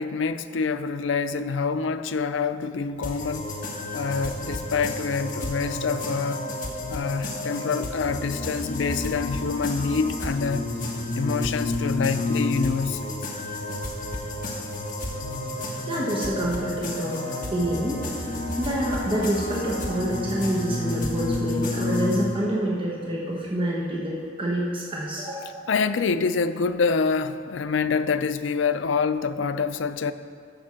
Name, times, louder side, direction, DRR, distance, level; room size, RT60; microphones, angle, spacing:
voice 1, 0.0-3.5 3.9-6.4 6.9-10.7 11.1-13.2 25.7-30.1, left 5 dB, 75° left, 0.4 m, -26 dB
sound 1, 3.0-22.2, left 2 dB, 45° left, 1.4 m, -31 dB
voice 2, 15.9-17.2 17.5-18.0 18.6-25.6, right 1 dB, 30° right, 1.1 m, -27 dB
Wind instrument woodwind instrument, 17.1-21.4, right 5 dB, 65° right, 0.6 m, -42 dB
13.0 x 4.5 x 6.5 m
head